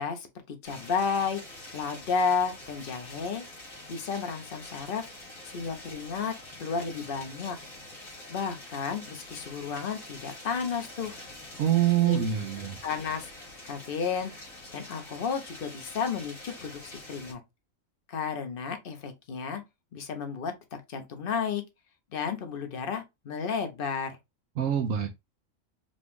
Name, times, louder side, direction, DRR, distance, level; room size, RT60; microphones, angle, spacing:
voice 1, 0.0-1.4 1.7-3.4 3.9-5.1 5.4-7.6 8.3-11.2 12.0-12.2 12.8-13.3 13.6-14.3 14.7-17.4 18.1-19.6 19.9-20.5 20.9-21.6 22.1-24.2, left 6 dB, 45° left, 1.0 m, -32 dB
sound 1, 0.6-17.3, left 1 dB, 80° left, 2.7 m, -46 dB
voice 2, 11.6-12.8 24.6-25.1, right 10 dB, 75° right, 1.0 m, -25 dB
5.1 x 2.4 x 3.5 m
omnidirectional pair, 1.4 m